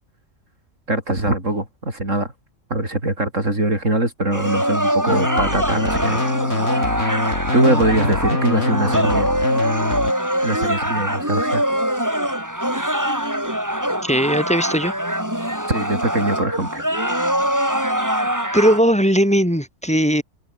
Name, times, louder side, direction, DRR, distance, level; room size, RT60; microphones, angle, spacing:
voice 1, 0.9-2.3 2.7-6.2 7.0-7.2 7.5-9.3 10.4-11.7 15.7-16.9, right 1 dB, 80° right, 7.4 m, -22 dB
sound 1, 4.3-18.8, equal, 15° right, 6.4 m, -23 dB
sound 2, 5.1-10.1, left 2 dB, 75° left, 5.4 m, -24 dB
voice 2, 14.0-14.9 18.5-20.2, equal, 5° left, 4.7 m, -18 dB
omnidirectional pair, 1.3 m